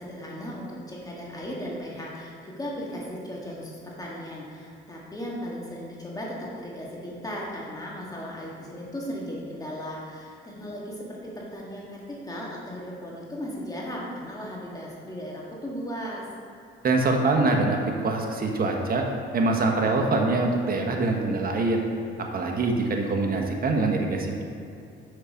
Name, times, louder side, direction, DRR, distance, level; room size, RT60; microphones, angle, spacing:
voice 1, 0.0-16.2, equal, 20° left, -4 dB, 1.8 m, -36 dB
voice 2, 16.8-19.0 19.3-21.8 22.3-24.4, right 3 dB, 50° right, 2 dB, 1.2 m, -24 dB
6.6 x 5.7 x 5.1 m, 2.6 s
cardioid pair, 90°, 20 cm